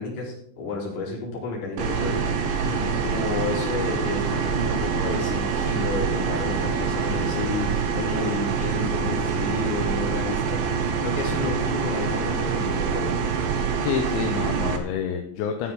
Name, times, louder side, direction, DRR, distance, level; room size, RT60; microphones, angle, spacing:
voice 1, 0.0-13.1, left 3 dB, 45° left, -4 dB, 5.3 m, -31 dB
sound 1, 1.8-14.8, right 6 dB, 65° right, 2.5 m, -25 dB
voice 2, 2.6-3.0 13.8-15.7, left 8 dB, 80° left, 3 dB, 3.2 m, -29 dB
13.5 x 11.5 x 3.9 m, 0.68 s
omnidirectional pair, 5.3 m